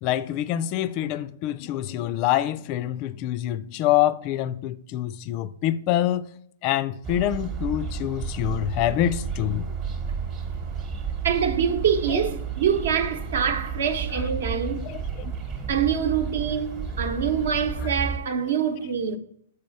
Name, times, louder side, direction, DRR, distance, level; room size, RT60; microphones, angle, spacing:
voice 1, 0.0-6.3 6.6-9.7 14.9-15.3, left 12 dB, 35° left, 0.4 m, -26 dB
sound 1, 7.0-18.2, right 6 dB, 25° right, 1.1 m, -32 dB
voice 2, 11.2-14.9 15.7-19.2, right 7 dB, 55° right, 0.9 m, -25 dB
7.1 x 4.7 x 4.6 m
figure-of-eight pair, 115°, 0 cm